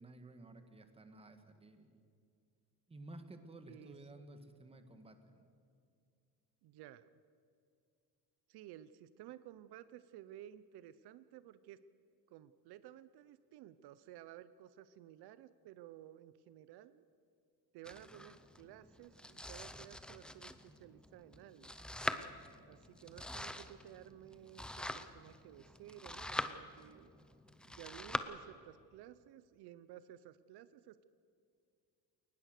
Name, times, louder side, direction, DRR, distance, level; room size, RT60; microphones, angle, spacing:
voice 1, 0.0-2.0 2.9-5.5, right 2 dB, 15° right, 8 dB, 1.6 m, -54 dB
voice 2, 3.6-3.9 6.6-7.0 8.5-11.8 12.3-17.0 17.7-21.9 22.7-27.1 27.7-31.0, right 12 dB, 75° right, 14 dB, 0.8 m, -55 dB
Domestic sounds home sounds, 17.8-28.2, left 1 dB, ahead, 0.6 m, -44 dB
22.0 x 19.5 x 6.6 m, 2.4 s
cardioid pair, 155°, 40 cm